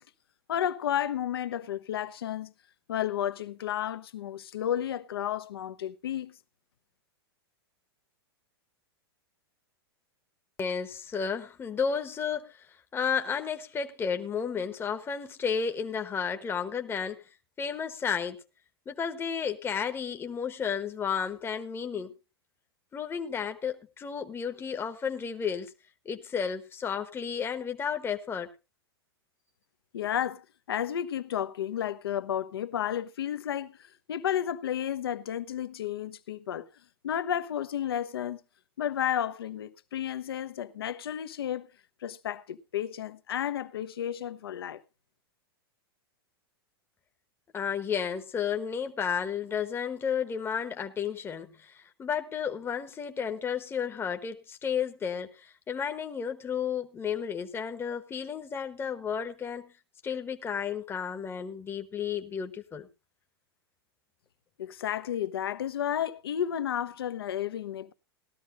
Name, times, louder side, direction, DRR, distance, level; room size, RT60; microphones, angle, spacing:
voice 1, 0.5-2.5 2.9-6.3 29.9-36.7 37.0-38.4 38.8-41.7 42.0-44.8 64.6-67.9, left 10 dB, 70° left, 0.9 m, -32 dB
voice 2, 10.6-17.3 17.6-18.4 18.9-22.1 22.9-25.7 26.0-28.5 47.5-59.7 60.0-62.9, left 7 dB, 20° left, 1.0 m, -32 dB
18.5 x 13.0 x 2.5 m
hypercardioid pair, 100°, 13 cm